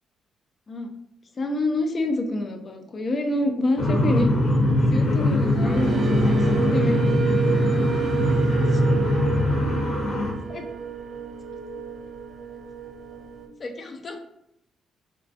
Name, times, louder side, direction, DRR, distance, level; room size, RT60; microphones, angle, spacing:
voice 1, 1.4-4.3 4.9-6.2 6.5-7.0 7.5-7.9 8.7-8.8 10.5-10.6 13.6-14.2, left 2 dB, 40° left, 5 dB, 0.4 m, -27 dB
sound 1, 3.8-10.3, left 1 dB, 65° left, 0.7 m, -21 dB
sound 2, 5.0-13.5, right 7 dB, 55° right, 0.4 m, -31 dB
2.3 x 2.2 x 2.5 m, 0.80 s
cardioid pair, 90°, 0 cm